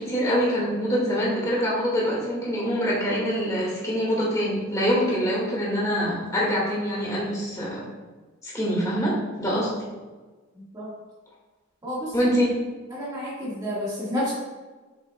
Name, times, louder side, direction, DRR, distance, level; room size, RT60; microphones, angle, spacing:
voice 1, 0.0-7.8 8.4-9.9 12.1-12.5, equal, 15° left, -5 dB, 1.8 m, -25 dB
voice 2, 10.5-10.9 11.8-12.1 12.9-14.3, equal, 20° right, -8 dB, 1.6 m, -30 dB
7.1 x 6.3 x 2.2 m, 1.3 s
head